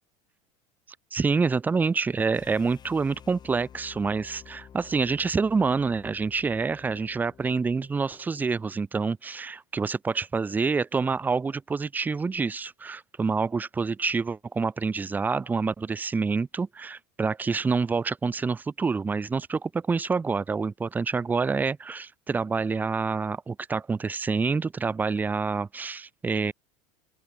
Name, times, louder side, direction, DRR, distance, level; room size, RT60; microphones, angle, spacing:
voice 1, 1.1-26.5, right 4 dB, 10° right, 0.5 m, -27 dB
sound 1, 2.3-8.5, left 8 dB, 25° left, 2.5 m, -51 dB
open air
supercardioid pair, 140°, 16 cm